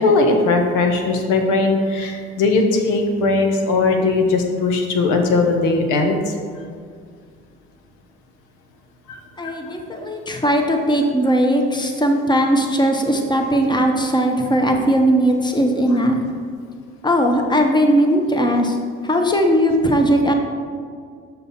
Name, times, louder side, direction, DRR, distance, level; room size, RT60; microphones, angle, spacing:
voice 1, 0.0-6.2 9.1-9.2 9.4-9.5, left 3 dB, 65° left, 3 dB, 1.1 m, -18 dB
voice 2, 9.4-16.2 17.0-18.8 19.0-20.3, equal, 15° left, 3 dB, 1.1 m, -18 dB
6.8 x 5.8 x 4.2 m, 2.1 s
hypercardioid pair, 65°, 32 cm